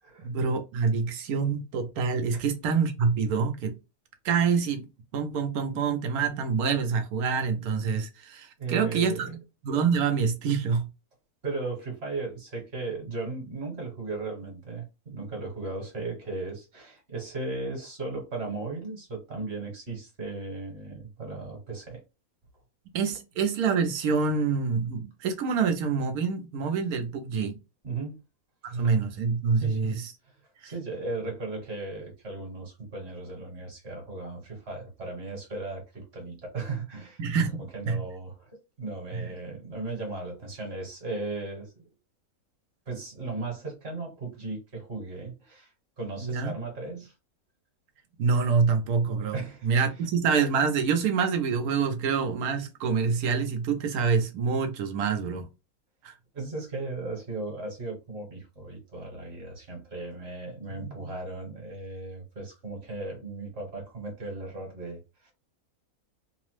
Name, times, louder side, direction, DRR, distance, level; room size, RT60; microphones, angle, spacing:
voice 1, 0.2-3.8 4.2-4.9 5.1-9.4 9.6-10.9 22.9-27.6 28.6-29.9 30.6-30.7 37.2-37.5 37.9-38.0 39.1-39.2 46.2-46.5 48.2-49.4 49.6-55.5 56.0-56.1 60.8-61.1, right 5 dB, 90° right, 1.2 m, -26 dB
voice 2, 8.6-9.3 11.4-22.0 27.8-28.2 28.7-29.0 29.6-30.4 30.6-37.2 37.7-38.5 38.8-41.7 42.9-47.1 49.3-50.1 56.3-65.3, right 3 dB, 50° right, 1.3 m, -36 dB
3.0 x 2.0 x 3.1 m
omnidirectional pair, 1.5 m